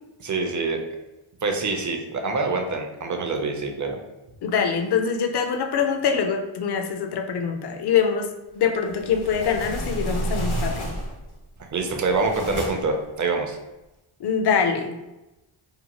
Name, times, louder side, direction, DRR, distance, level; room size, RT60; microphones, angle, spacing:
voice 1, 0.2-0.8 1.4-4.0 11.6-13.6, right 3 dB, 40° right, 4 dB, 0.5 m, -25 dB
voice 2, 4.4-8.3 8.6-10.9 14.2-15.0, left 6 dB, 55° left, 5 dB, 0.5 m, -24 dB
sound 1, 8.8-11.3 11.8-13.0, right 1 dB, 75° left, 1.0 m, -30 dB
2.8 x 2.1 x 2.9 m, 1.0 s
wide cardioid pair, 75°, 50 cm